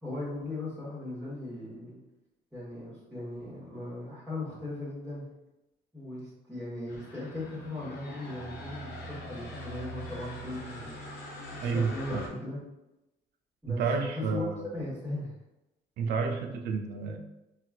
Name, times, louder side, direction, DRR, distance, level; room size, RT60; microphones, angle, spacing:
voice 1, 0.0-2.0 2.5-5.3 5.9-11.1 11.5-12.6 13.6-13.8 14.1-14.4 14.7-15.3, left 2 dB, 5° right, -11 dB, 1.2 m, -38 dB
sound 1, 6.9-12.3, left 1 dB, 80° left, 0.9 m, -43 dB
voice 2, 11.6-12.2 13.7-14.7 16.0-17.2, right 5 dB, 75° right, 4 dB, 0.5 m, -30 dB
4.1 x 2.3 x 2.3 m, 0.96 s
cardioid pair, 110°, 17 cm